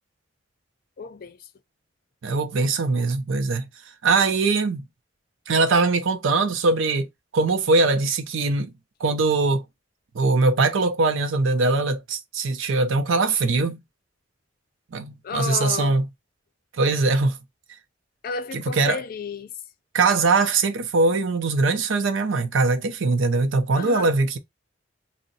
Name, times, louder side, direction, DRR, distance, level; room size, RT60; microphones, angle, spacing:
voice 1, 1.0-1.5 15.2-16.0 18.2-19.5 23.8-24.1, left 5 dB, 50° left, 0.4 m, -32 dB
voice 2, 2.2-3.6 4.0-4.8 5.5-7.1 7.3-8.7 9.0-9.6 10.1-13.8 14.9-16.1 16.8-17.4 18.5-19.0 19.9-24.4, right 3 dB, 90° right, 0.6 m, -21 dB
2.6 x 2.1 x 3.9 m
head